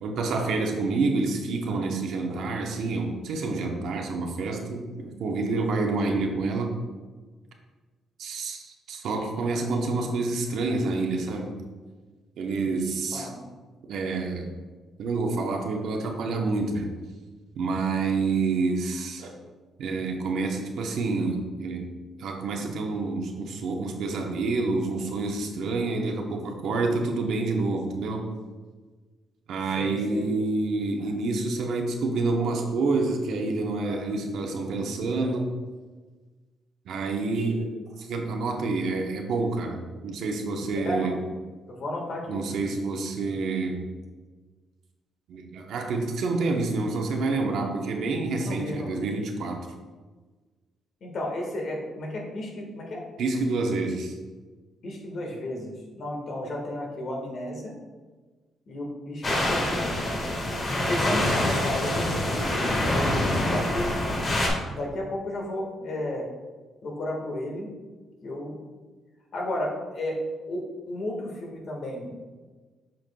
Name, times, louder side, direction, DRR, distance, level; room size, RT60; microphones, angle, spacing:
voice 1, 0.0-6.7 8.2-11.5 12.4-13.3 13.9-14.5 15.0-16.9 17.6-19.3 19.8-21.9 22.2-28.2 29.5-35.5 36.9-41.2 42.3-43.9 45.3-49.6 53.2-54.1, right 3 dB, 75° right, 2 dB, 0.9 m, -28 dB
voice 2, 29.8-30.3 40.7-41.1 41.7-42.4 48.4-49.1 51.0-53.0 54.8-57.8 58.7-60.1 60.9-63.9 64.5-66.3 66.8-67.7 68.2-68.6 69.3-70.2 70.5-72.1, left 1 dB, 60° left, 0 dB, 1.6 m, -33 dB
sound 1, 59.2-64.5, left 1 dB, 40° left, 1.7 m, -25 dB
7.6 x 5.7 x 2.3 m, 1.3 s
cardioid pair, 90°, 0 cm